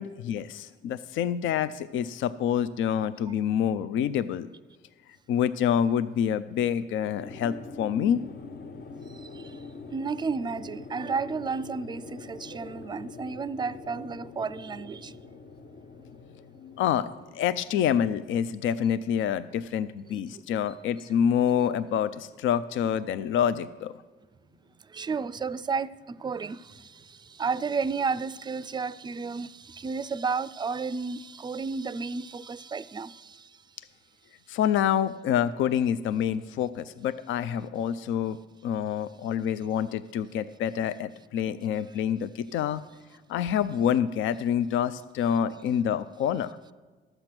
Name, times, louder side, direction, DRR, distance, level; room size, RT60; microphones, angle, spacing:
voice 1, 0.0-4.5 5.3-8.2 16.6-23.9 34.5-38.4 38.6-42.8 43.3-46.6, left 9 dB, 80° left, 0.4 m, -27 dB
sound 1, 7.2-19.5, left 3 dB, 55° left, 0.9 m, -44 dB
voice 2, 9.2-9.6 9.9-15.1 20.3-20.4 24.9-33.5, right 5 dB, 20° right, 0.3 m, -32 dB
12.0 x 7.9 x 6.0 m
cardioid pair, 90°, 20 cm